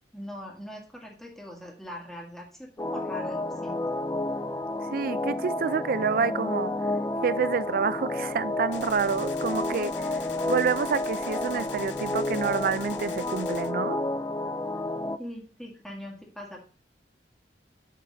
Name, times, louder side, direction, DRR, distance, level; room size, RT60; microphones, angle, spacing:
voice 1, 0.1-4.0 15.2-16.6, left 1 dB, ahead, 1.9 m, -41 dB
sound 1, 2.8-15.2, left 2 dB, 20° left, 0.4 m, -31 dB
voice 2, 4.9-6.7 7.2-14.0, right 5 dB, 55° right, 0.4 m, -28 dB
Gunshot gunfire, 8.7-13.7, left 9 dB, 85° left, 0.5 m, -45 dB
7.4 x 3.9 x 5.5 m
head